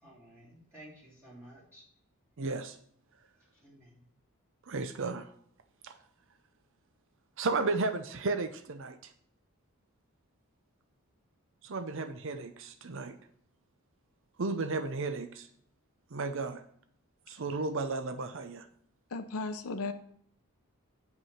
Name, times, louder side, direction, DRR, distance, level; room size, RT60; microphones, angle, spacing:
voice 1, 0.0-1.8 3.6-4.0, right 1 dB, 10° right, -8 dB, 3.6 m, -53 dB
voice 2, 2.4-2.8 4.7-5.3 5.8-5.9 7.4-9.1 11.6-13.2 14.4-15.5 16.1-16.6 17.3-18.7, right 3 dB, 60° right, 10 dB, 0.6 m, -34 dB
voice 3, 19.1-19.9, left 3 dB, 75° left, 6 dB, 0.7 m, -35 dB
9.3 x 5.5 x 5.7 m, 0.64 s
head